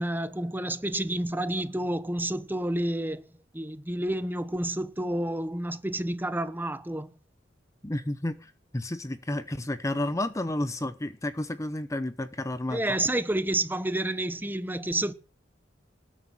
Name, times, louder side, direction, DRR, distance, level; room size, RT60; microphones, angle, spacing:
voice 1, 0.0-3.2 3.5-7.1 12.7-15.1, right 1 dB, 10° right, 1.0 m, -29 dB
voice 2, 7.8-8.3 8.7-12.8, left 1 dB, 15° left, 0.8 m, -31 dB
19.0 x 9.3 x 7.5 m
head